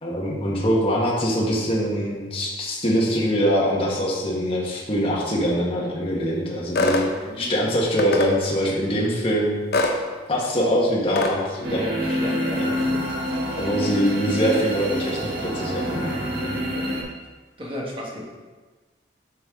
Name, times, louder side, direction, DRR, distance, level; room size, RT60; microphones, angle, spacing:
voice 1, 0.0-9.6 10.3-12.2 12.6-12.7 13.6-16.6, equal, 30° left, -4 dB, 1.3 m, -23 dB
sound 1, 6.8-7.1 8.0-8.3 9.7-10.0 11.2-11.3, left 2 dB, 60° left, 0.8 m, -22 dB
voice 2, 7.1-7.5 11.8-11.9 12.2-13.1 13.6-13.7 16.7-16.9 17.6-18.2, equal, 30° right, -3 dB, 1.5 m, -35 dB
sound 2, 11.6-17.0, equal, 60° right, 1.7 m, -27 dB
7.5 x 6.2 x 3.7 m, 1.3 s
head